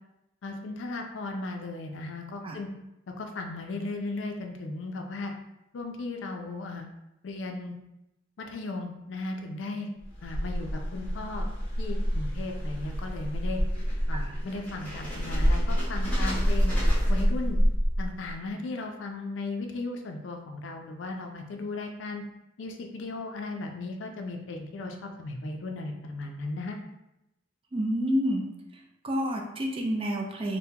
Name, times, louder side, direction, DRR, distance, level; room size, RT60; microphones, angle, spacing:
voice 1, 0.4-2.7 3.2-5.3 5.7-6.9 7.2-7.7 8.4-9.9 10.2-11.5 11.8-13.6 14.1-16.7 17.1-17.6 18.0-22.2 22.6-26.8, left 2 dB, 75° left, 3 dB, 0.4 m, -36 dB
sound 1, 10.0-18.3, equal, 10° left, 1.0 m, -27 dB
voice 2, 27.7-28.5 29.0-30.6, equal, 30° right, 1 dB, 0.4 m, -28 dB
3.5 x 2.1 x 2.7 m, 0.89 s
head